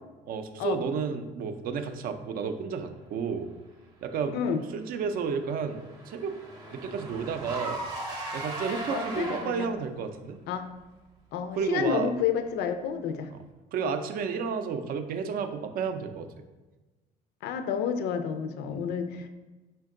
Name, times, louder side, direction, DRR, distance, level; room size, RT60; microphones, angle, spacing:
voice 1, 0.3-3.5 4.0-4.4 4.7-6.3 6.7-7.8 8.3-10.4 11.6-12.1 13.7-16.3 18.7-18.8, right 6 dB, 60° right, 8 dB, 0.4 m, -31 dB
Car / Engine, 4.8-9.8, right 1 dB, 25° right, 0.7 m, -38 dB
voice 2, 8.9-9.7 10.5-10.7 11.3-13.3 17.4-19.3, left 7 dB, 80° left, 8 dB, 0.4 m, -30 dB
4.3 x 2.3 x 3.6 m, 1.2 s
cardioid pair, 110°, 17 cm